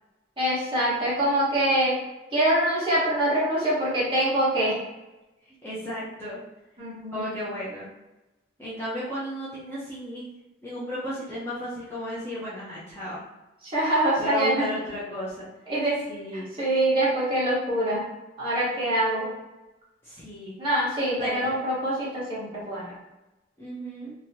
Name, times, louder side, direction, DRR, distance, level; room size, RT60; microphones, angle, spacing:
voice 1, 0.4-1.9 2.3-4.8 6.8-7.4 13.6-14.7 15.7-16.0 16.3-18.0 18.4-19.3 20.6-23.0, right 1 dB, 25° right, -9 dB, 1.2 m, -24 dB
voice 2, 5.4-6.4 7.1-7.9 8.6-10.3 10.6-13.2 14.2-15.5 16.1-16.5 20.0-20.6 21.2-21.5 23.6-24.1, equal, 15° left, -10 dB, 0.7 m, -34 dB
3.0 x 2.8 x 2.7 m, 1.0 s
head